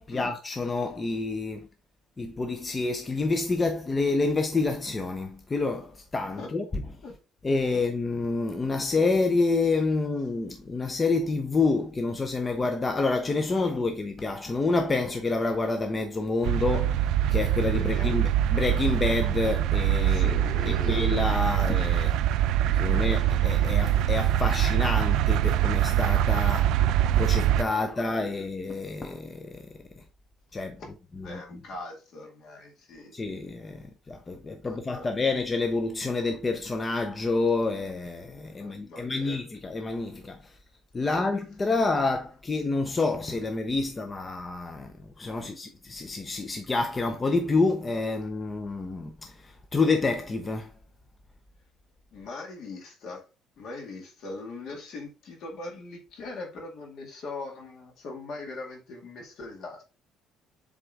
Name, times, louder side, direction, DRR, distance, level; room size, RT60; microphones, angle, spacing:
voice 1, 0.0-1.7 2.2-6.8 7.4-16.9 17.3-20.4 20.9-22.2 22.8-26.7 27.1-29.6 30.5-30.8 31.2-31.3 33.1-40.4 40.9-44.9 45.2-49.1 49.7-50.7, left 3 dB, 20° left, 0.5 m, -28 dB
sound 1, 16.4-27.6, right 11 dB, 75° right, 0.3 m, -24 dB
voice 2, 17.7-18.2 20.0-21.1 22.9-23.3 27.7-28.5 30.8-30.9 31.2-33.1 34.6-35.1 38.6-39.4 41.0-41.2 41.8-41.9 45.4-45.6 52.1-53.2 53.6-59.8, left 2 dB, 55° left, 2.0 m, -41 dB
7.6 x 3.6 x 3.5 m
cardioid pair, 160°, 0 cm